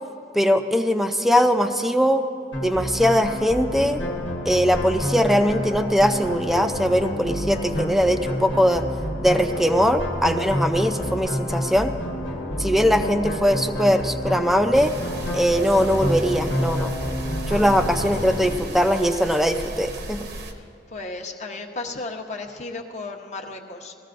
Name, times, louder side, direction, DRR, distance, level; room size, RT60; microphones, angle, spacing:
voice 1, 0.3-2.2 2.6-4.0 4.5-8.8 9.2-11.9 12.6-14.9 15.3-17.0 17.5-20.3, equal, ahead, 7 dB, 0.4 m, -21 dB
sound 1, 2.5-18.6, equal, 90° left, 1.3 m, -29 dB
sound 2, 14.7-20.5, right 1 dB, 60° right, 0.9 m, -35 dB
voice 2, 20.3-23.9, left 3 dB, 40° left, 2 dB, 0.9 m, -35 dB
20.0 x 14.5 x 2.5 m, 2.5 s
head